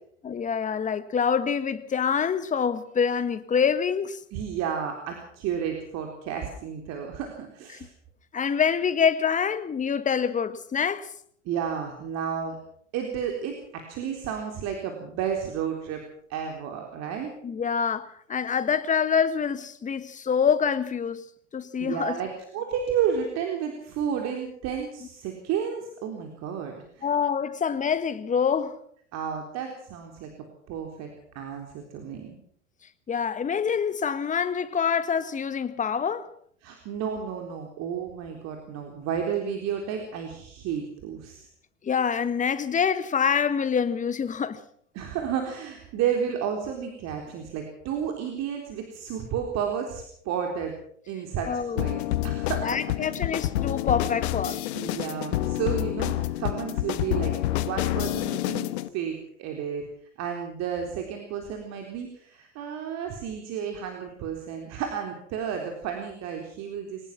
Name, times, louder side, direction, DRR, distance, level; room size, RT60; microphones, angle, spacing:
voice 1, 0.2-4.2 8.3-11.1 17.4-21.2 21.5-22.2 27.0-28.7 33.1-36.3 41.8-44.6 51.5-51.8 52.6-54.6, left 7 dB, 20° left, 1.6 m, -26 dB
voice 2, 4.3-7.9 11.5-12.6 12.9-16.0 16.3-17.3 21.8-27.1 29.1-30.3 30.7-31.1 31.3-32.4 36.6-41.5 44.9-50.7 51.1-53.2 54.4-58.7 58.9-59.8 60.2-67.1, right 8 dB, 45° right, 3.9 m, -32 dB
sound 1, 51.8-58.9, left 15 dB, 60° left, 1.2 m, -28 dB
22.0 x 19.0 x 6.1 m
figure-of-eight pair, 85°, 36 cm